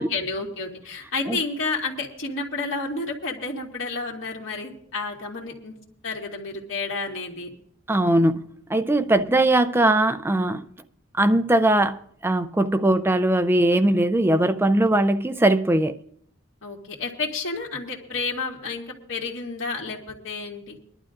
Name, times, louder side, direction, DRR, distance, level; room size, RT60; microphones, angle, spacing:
voice 1, 0.0-5.7 6.0-7.5 9.2-9.3 16.6-20.8, left 3 dB, 70° left, 2.2 m, -31 dB
voice 2, 7.9-10.6 11.2-16.0, right 1 dB, 10° right, 0.5 m, -20 dB
23.0 x 11.5 x 2.6 m
head